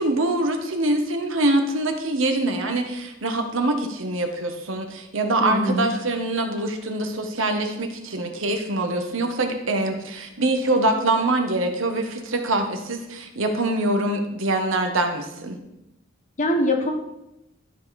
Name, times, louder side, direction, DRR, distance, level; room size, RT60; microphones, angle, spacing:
voice 1, 0.0-15.6, right 2 dB, 70° right, 5 dB, 1.3 m, -24 dB
voice 2, 5.4-5.9 16.4-16.9, left 1 dB, 40° left, 3 dB, 1.3 m, -22 dB
12.5 x 5.1 x 4.2 m, 0.89 s
head